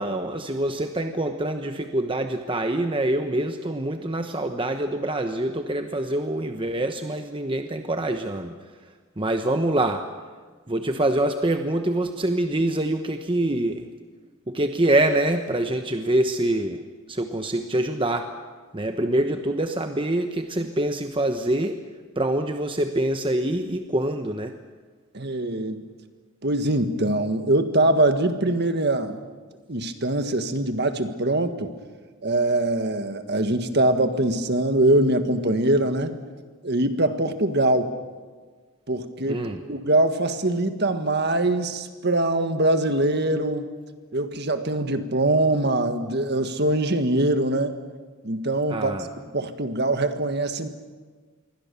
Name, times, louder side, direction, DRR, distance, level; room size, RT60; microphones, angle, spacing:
voice 1, 0.0-8.6 9.2-10.1 10.7-13.9 14.5-16.8 17.1-18.3 18.7-21.8 22.2-24.5 39.3-39.6 48.7-49.1, right 1 dB, 25° right, 6 dB, 1.0 m, -25 dB
voice 2, 25.1-25.8 26.4-29.2 29.7-31.7 32.2-36.1 36.6-37.9 38.9-43.7 44.1-47.7 48.2-48.9 49.3-50.7, right 1 dB, 50° right, 8 dB, 1.8 m, -23 dB
27.0 x 23.0 x 7.0 m, 1.4 s
head